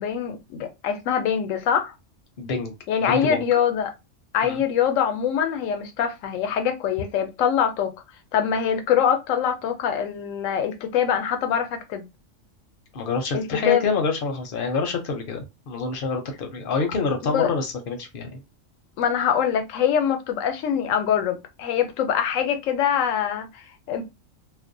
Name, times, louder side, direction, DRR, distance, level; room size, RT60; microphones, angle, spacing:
voice 1, 0.0-1.9 2.9-3.9 4.3-7.9 8.3-12.0 13.3-13.9 17.3-17.5 19.0-24.0, left 8 dB, 85° left, 1.0 m, -24 dB
voice 2, 2.4-2.7 3.0-3.4 4.4-4.6 12.9-18.4, left 4 dB, 55° left, 0.7 m, -27 dB
2.5 x 2.1 x 2.6 m
omnidirectional pair, 1.3 m